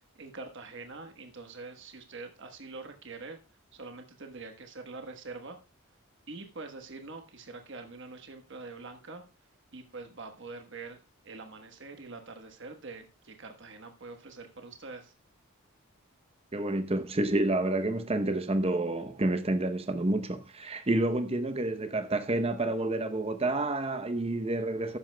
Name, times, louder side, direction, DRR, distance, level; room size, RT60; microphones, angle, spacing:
voice 1, 0.1-3.4 3.7-5.6 6.3-9.2 9.7-11.0 11.2-15.1, right 3 dB, 55° right, 1.2 m, -44 dB
voice 2, 16.5-25.0, right 2 dB, 25° right, 0.7 m, -29 dB
13.0 x 10.0 x 2.2 m
head